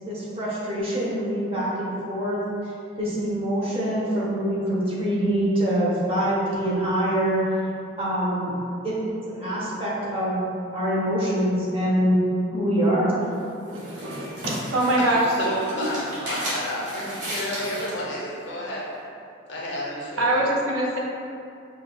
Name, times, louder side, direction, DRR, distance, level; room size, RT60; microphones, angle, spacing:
voice 1, 0.0-2.7 3.0-7.4 8.0-8.6 8.8-10.4 10.7-12.2 12.5-13.2, equal, 30° right, -7 dB, 0.7 m, -25 dB
sound 1, 13.2-18.0, equal, 55° right, 1.4 m, -34 dB
voice 2, 13.7-14.3 14.7-15.2 20.1-21.0, right 1 dB, 85° right, -2 dB, 0.6 m, -23 dB
voice 3, 15.0-18.9 19.5-20.5, left 1 dB, 60° left, -4 dB, 0.7 m, -31 dB
5.0 x 2.2 x 2.3 m, 2.6 s
head